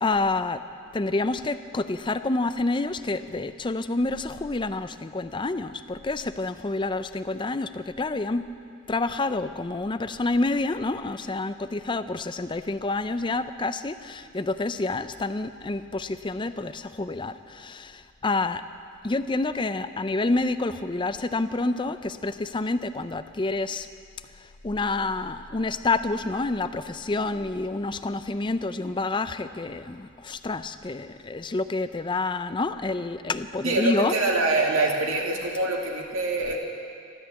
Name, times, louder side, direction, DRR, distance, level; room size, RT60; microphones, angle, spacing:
voice 1, 0.0-0.6 0.9-8.4 8.9-18.6 19.0-23.9 24.4-34.1, left 3 dB, 25° left, 11 dB, 0.5 m, -28 dB
voice 2, 33.6-36.6, right 2 dB, 75° right, 0 dB, 2.3 m, -24 dB
14.0 x 12.5 x 8.3 m, 2.3 s
head